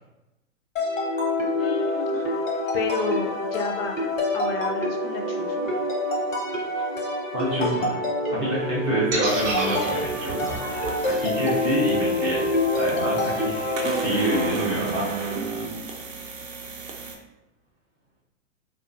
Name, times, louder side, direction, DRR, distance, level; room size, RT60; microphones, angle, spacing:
sound 1, 0.8-14.5, left 1 dB, 85° left, 0.9 m, -26 dB
voice 1, 1.6-2.3 2.7-4.0 4.3-5.7, left 3 dB, 50° left, 3 dB, 0.4 m, -30 dB
voice 2, 7.3-8.0 8.3-12.5 12.7-15.1, right 1 dB, 20° right, -7 dB, 0.3 m, -27 dB
sound 2, 9.1-13.2, right 3 dB, 35° right, 0.8 m, -32 dB
sound 3, 9.3-17.2, right 4 dB, 90° right, 0.5 m, -34 dB
2.4 x 2.4 x 2.5 m, 0.97 s
hypercardioid pair, 115°, 38 cm